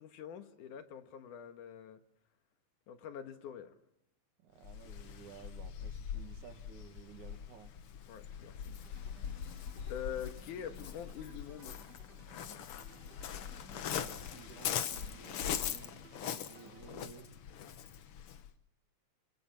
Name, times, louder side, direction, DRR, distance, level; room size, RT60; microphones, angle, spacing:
voice 1, 0.0-2.0 2.9-3.8 8.1-8.8 9.1-9.2 9.9-11.8, left 8 dB, 85° left, 3.0 m, -45 dB
voice 2, 4.4-7.8 14.0-17.4, right 7 dB, 75° right, 3.4 m, -55 dB
Waves surf, 4.6-18.5, left 9 dB, 60° left, 1.7 m, -42 dB
sound 1, 8.8-17.2, right 4 dB, 35° right, 2.6 m, -60 dB
26.5 x 26.0 x 5.8 m
omnidirectional pair, 3.5 m